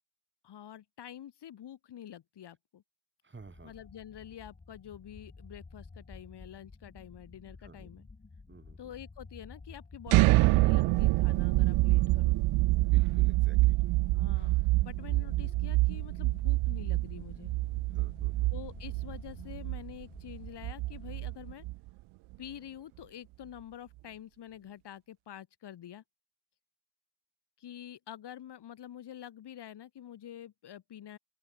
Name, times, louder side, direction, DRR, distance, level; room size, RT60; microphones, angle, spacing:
voice 1, 0.4-2.8 3.6-8.1 8.8-12.4 14.1-17.5 18.5-21.6 22.4-26.0 27.6-31.2, left 10 dB, 60° left, 2.0 m, -47 dB
voice 2, 3.2-3.7 7.6-7.9 8.5-8.8 11.9-12.1 12.7-13.8 17.9-18.5, right 3 dB, 25° right, 5.8 m, -52 dB
sound 1, 3.4-21.2, left 3 dB, 20° left, 2.1 m, -53 dB
sound 2, 10.1-21.9, right 21 dB, 90° right, 0.7 m, -26 dB
open air
cardioid pair, 90°, 47 cm